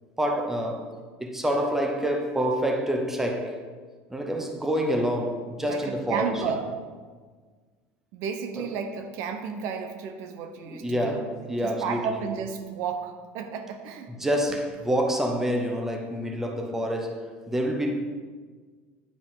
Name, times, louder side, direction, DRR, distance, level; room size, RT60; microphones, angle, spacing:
voice 1, 0.2-0.9 1.2-3.6 4.1-6.4 8.6-8.7 10.7-12.2 14.2-17.9, equal, 5° right, 0.9 m, -27 dB
voice 2, 5.6-6.7 8.1-11.2 11.6-14.4, right 6 dB, 60° right, 0.8 m, -33 dB
9.8 x 5.0 x 5.4 m
cardioid pair, 145°, 5 cm